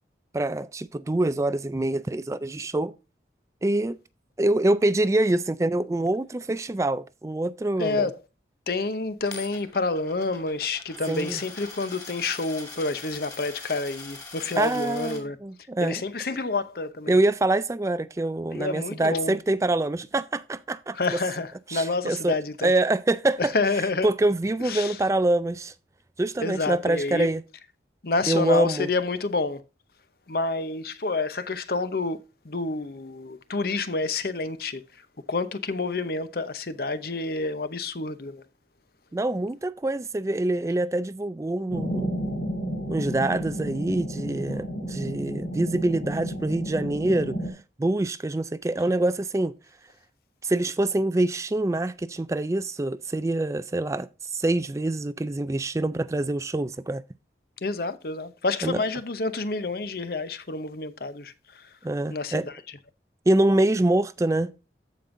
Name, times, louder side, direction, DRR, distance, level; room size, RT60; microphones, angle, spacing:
voice 1, 0.3-2.9 3.6-4.0 4.4-8.1 11.1-11.4 14.6-16.0 17.1-21.2 21.7-25.7 26.2-27.4 28.3-28.9 39.1-42.1 42.9-47.4 47.8-49.5 50.4-57.0 58.6-58.8 61.8-62.5 63.3-64.5, right 2 dB, 15° right, 0.3 m, -25 dB
voice 2, 7.8-8.1 8.7-15.4 15.8-17.2 18.5-19.4 21.0-22.7 23.4-24.1 24.7-25.0 26.4-27.3 28.0-29.6 30.3-32.2 32.4-34.8 35.3-38.4 57.6-61.3 62.1-62.5, left 3 dB, 55° left, 0.8 m, -28 dB
Coin (dropping), 9.2-15.2, left 3 dB, 20° left, 2.5 m, -42 dB
sound 1, 41.7-47.5, equal, 80° left, 4.4 m, -32 dB
14.0 x 5.2 x 2.6 m
head